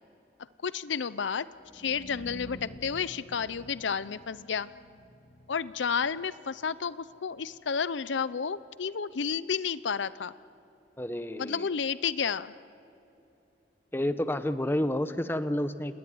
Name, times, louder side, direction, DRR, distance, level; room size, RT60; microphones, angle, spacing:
voice 1, 0.6-1.5 1.7-4.7 5.5-10.3 11.3-12.5, left 6 dB, 85° left, 16 dB, 0.6 m, -31 dB
sound 1, 1.5-7.5, equal, 35° left, 1.8 m, -50 dB
voice 2, 11.0-11.7 13.9-16.0, left 1 dB, 10° left, 11 dB, 0.9 m, -30 dB
29.0 x 19.0 x 9.6 m, 2.8 s
head